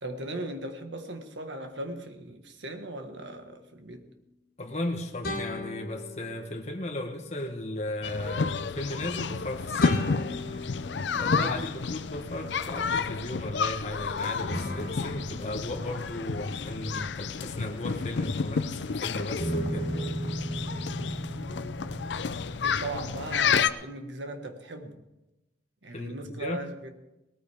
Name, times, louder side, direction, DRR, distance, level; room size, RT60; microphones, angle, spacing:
voice 1, 0.0-4.1 11.3-11.7 20.9-21.0 22.6-25.0 25.8-26.9, right 2 dB, 85° right, 5 dB, 1.6 m, -38 dB
sound 1, 3.3-3.4 5.2-6.9 9.8-12.2 14.5-18.8 19.4-22.6, equal, 55° left, 2.8 m, -37 dB
voice 2, 4.6-10.1 11.1-19.9 25.9-26.6, left 1 dB, 40° left, 2 dB, 1.1 m, -35 dB
sound 2, 8.0-23.7, left 5 dB, 75° left, 0.5 m, -31 dB
18.5 x 14.0 x 3.5 m, 0.97 s
head